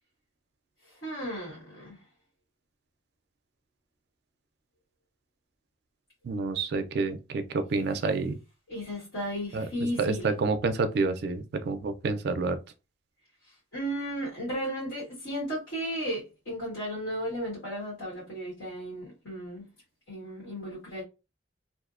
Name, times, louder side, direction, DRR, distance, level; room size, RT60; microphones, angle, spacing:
voice 1, 1.0-1.9 8.7-10.3 13.7-19.6 20.1-21.0, equal, 65° left, 1.1 m, -34 dB
voice 2, 6.2-8.4 9.5-9.7 10.0-12.6, right 4 dB, 50° right, 0.3 m, -28 dB
2.5 x 2.0 x 2.4 m
head